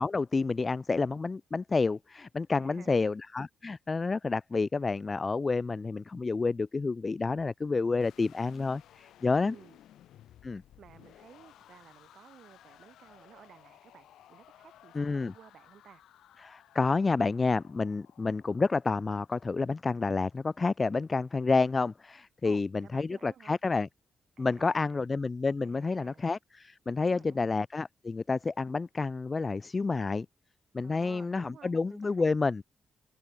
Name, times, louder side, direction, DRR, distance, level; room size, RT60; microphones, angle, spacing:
voice 1, 0.0-9.5 10.4-10.6 14.9-15.3 16.4-23.9 24.4-30.3 30.7-32.6, left 4 dB, 40° left, 0.9 m, -29 dB
voice 2, 2.6-3.1 9.4-9.8 10.8-16.0 22.4-23.6 24.4-25.0 25.6-26.2 27.0-27.5 30.8-32.3, right 8 dB, 70° right, 6.7 m, -55 dB
sound 1, 8.0-20.1, left 12 dB, 85° left, 3.9 m, -58 dB
supercardioid pair, 55°, 0 cm